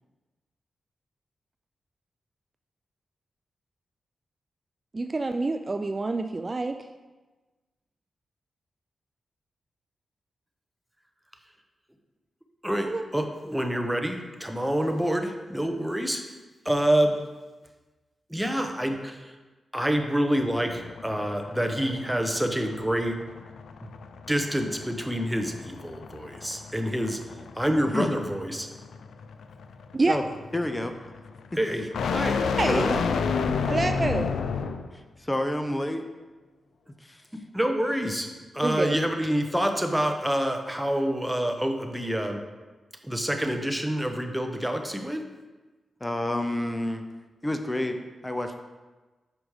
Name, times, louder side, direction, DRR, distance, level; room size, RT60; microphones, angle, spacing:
voice 1, 4.9-6.7 12.8-13.0 29.9-30.2 32.6-32.9 33.7-34.3 38.6-39.0, right 3 dB, 35° right, 8 dB, 0.3 m, -27 dB
voice 2, 12.6-16.2 16.6-17.2 18.3-19.3 19.7-23.2 23.8-23.9 24.3-27.2 27.5-28.7 31.6-31.9 32.1-32.4 37.5-38.3 38.5-42.4 43.0-45.2, equal, 5° right, 4 dB, 0.9 m, -27 dB
sound 1, 20.4-34.9, left 5 dB, 85° left, 0.4 m, -32 dB
voice 3, 30.5-30.9 32.7-33.0 34.9-36.1 37.0-37.2 46.0-47.0 47.4-48.0 48.2-48.6, left 1 dB, 20° left, 6 dB, 0.6 m, -28 dB
6.3 x 5.0 x 4.8 m, 1.2 s
cardioid pair, 60°, 0 cm